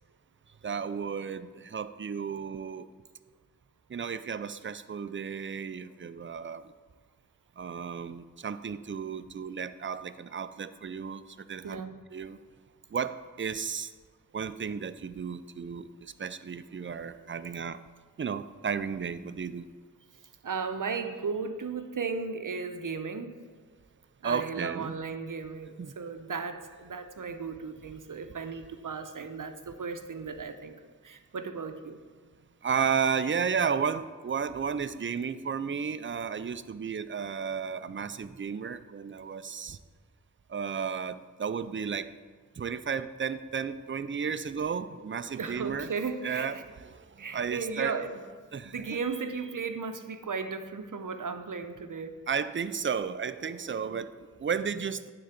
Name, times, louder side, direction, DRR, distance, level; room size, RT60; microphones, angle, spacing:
voice 1, 0.6-2.9 3.9-6.6 7.6-11.2 11.5-11.8 12.1-12.4 12.9-13.9 14.3-17.8 18.2-19.7 24.2-25.0 25.8-25.9 32.6-39.8 40.5-42.1 42.6-45.9 46.2-48.0 48.5-49.0 52.3-55.1, right 6 dB, 35° right, 12 dB, 0.4 m, -33 dB
voice 2, 11.6-12.0 20.4-23.5 24.2-32.0 45.4-46.6 47.2-48.2 48.6-52.2 53.8-54.0, right 5 dB, 70° right, 8 dB, 0.8 m, -36 dB
10.0 x 3.8 x 7.2 m, 1.5 s
wide cardioid pair, 50°, 33 cm